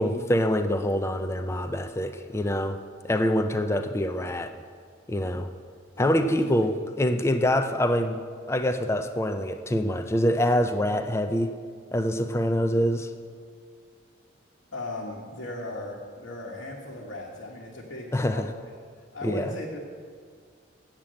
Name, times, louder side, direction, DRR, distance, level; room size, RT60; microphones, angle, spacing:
voice 1, 0.0-2.8 3.0-4.5 5.1-5.5 6.0-8.2 8.5-11.5 11.9-13.1 18.1-18.5 19.2-19.5, equal, 15° left, 8 dB, 0.4 m, -25 dB
voice 2, 6.0-6.3 6.6-6.7 14.7-18.8 19.1-19.8, left 1 dB, 75° left, -4 dB, 1.3 m, -37 dB
8.5 x 7.4 x 7.6 m, 2.1 s
head